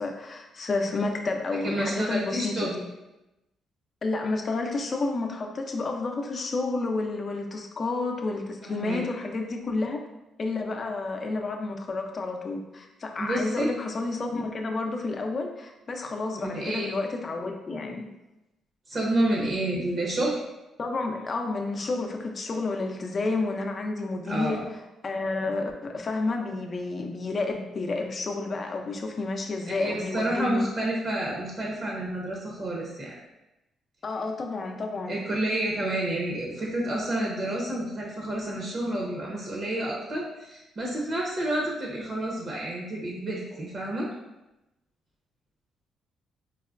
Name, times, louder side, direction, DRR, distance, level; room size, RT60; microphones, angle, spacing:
voice 1, 0.0-2.8 4.0-10.0 10.4-18.1 20.8-24.6 25.0-30.7 34.0-35.2, left 3 dB, 40° left, 3 dB, 0.5 m, -30 dB
voice 2, 1.6-2.7 8.6-9.0 13.2-13.7 16.4-16.9 18.9-20.4 24.3-24.7 29.8-33.2 35.1-44.1, right 1 dB, 50° right, -3 dB, 0.8 m, -29 dB
4.6 x 2.1 x 2.4 m, 0.96 s
cardioid pair, 90°, 0 cm